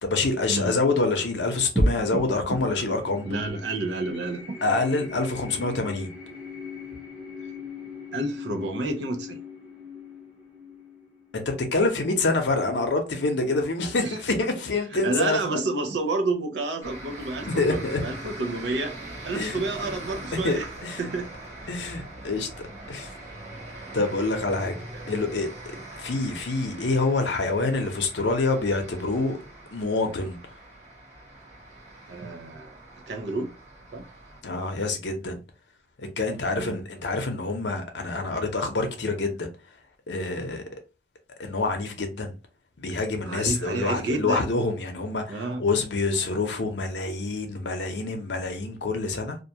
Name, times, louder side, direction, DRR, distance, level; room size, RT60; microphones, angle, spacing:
voice 1, 0.0-3.3 4.6-6.1 11.3-15.6 17.5-18.0 19.3-19.6 20.4-21.0 21.7-23.1 23.9-24.8 25.1-25.5 26.0-29.4 29.7-30.4 34.4-35.4 36.0-39.5 40.1-40.6 41.4-42.3 42.8-49.4, left 3 dB, 75° left, 0.7 m, -26 dB
sound 1, 1.7-12.4, left 1 dB, 10° right, 0.7 m, -34 dB
voice 2, 3.2-4.6 8.1-9.4 14.0-14.2 14.9-18.9 19.2-20.7 21.0-21.3 24.5-24.6 24.9-25.0 32.1-32.7 33.1-33.5 33.9-34.1 36.5-36.8 43.2-44.5 45.3-45.6, right 2 dB, 80° right, 0.6 m, -30 dB
sound 2, 16.8-34.4, right 1 dB, 35° right, 1.4 m, -42 dB
2.5 x 2.2 x 2.7 m
head